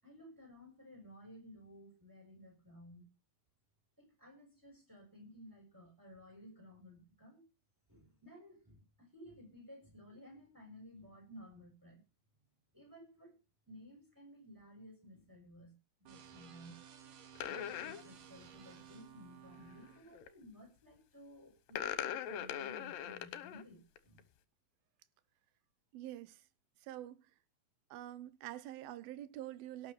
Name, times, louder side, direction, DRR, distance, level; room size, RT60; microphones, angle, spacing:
voice 1, 0.0-3.1 4.0-7.4 7.9-12.0 12.7-13.4 13.7-16.8 17.4-24.2, equal, 5° right, 6.9 m, -56 dB
sound 1, 16.1-20.0, right 8 dB, 65° right, 3.0 m, -56 dB
sound 2, 17.4-18.0 20.0-20.3 21.7-23.6 24.0-24.2, left 10 dB, 75° left, 2.7 m, -40 dB
voice 2, 25.9-26.4 26.8-27.2 27.9-29.9, right 13 dB, 85° right, 2.7 m, -46 dB
18.0 x 6.1 x 7.0 m
omnidirectional pair, 4.2 m